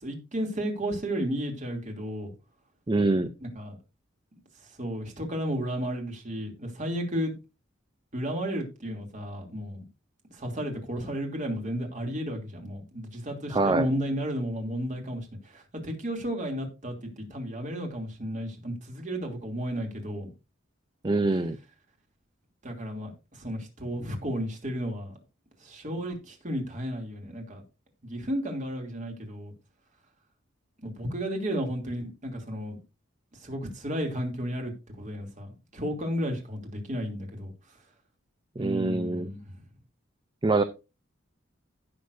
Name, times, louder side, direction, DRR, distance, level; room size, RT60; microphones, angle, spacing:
voice 1, 0.0-2.3 3.4-3.8 4.8-7.3 8.1-9.8 10.3-20.3 22.6-25.1 25.6-27.6 28.0-29.5 30.8-32.8 33.4-37.5 38.6-39.5, equal, 40° right, 2.9 m, -33 dB
voice 2, 2.9-3.3 13.5-13.9 21.0-21.6 38.6-39.3 40.4-40.6, right 2 dB, 25° right, 0.6 m, -24 dB
16.0 x 6.6 x 2.7 m
head